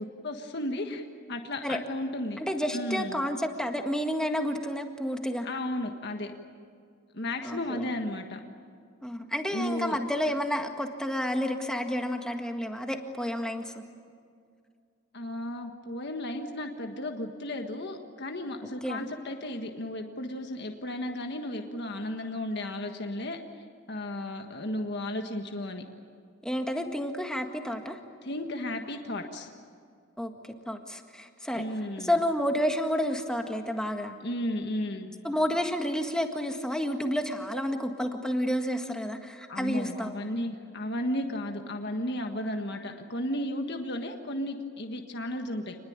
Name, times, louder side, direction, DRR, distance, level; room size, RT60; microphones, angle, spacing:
voice 1, 0.0-2.4 2.7-3.2 5.4-6.3 7.1-8.4 9.5-10.0 15.1-23.4 23.9-25.8 28.2-29.5 31.5-32.2 34.2-35.1 39.5-45.7, left 1 dB, 55° left, 4 dB, 1.6 m, -34 dB
voice 2, 2.4-5.5 7.4-7.8 9.0-13.8 18.8-19.1 26.4-28.0 30.2-30.3 30.7-31.6 32.0-34.2 35.2-40.2, equal, 5° left, 4 dB, 1.8 m, -30 dB
28.0 x 21.0 x 8.8 m, 2.2 s
head